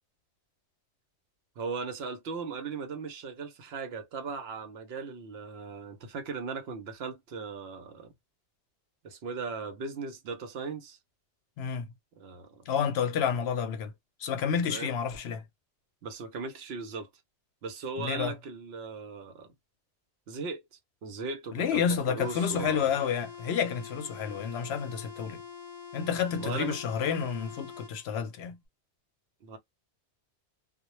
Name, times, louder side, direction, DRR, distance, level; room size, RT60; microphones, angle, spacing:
voice 1, 1.6-8.1 9.0-11.0 12.2-12.7 14.7-14.9 16.0-17.1 17.6-19.5 20.3-22.9 26.4-26.8 29.4-29.6, right 4 dB, 65° right, 0.8 m, -38 dB
voice 2, 12.7-13.9 14.2-15.4 18.0-18.3 21.5-25.4 25.9-28.6, left 7 dB, 70° left, 0.8 m, -30 dB
sound 1, 22.2-27.9, left 7 dB, 50° left, 0.3 m, -45 dB
2.1 x 2.1 x 2.9 m
omnidirectional pair, 1.2 m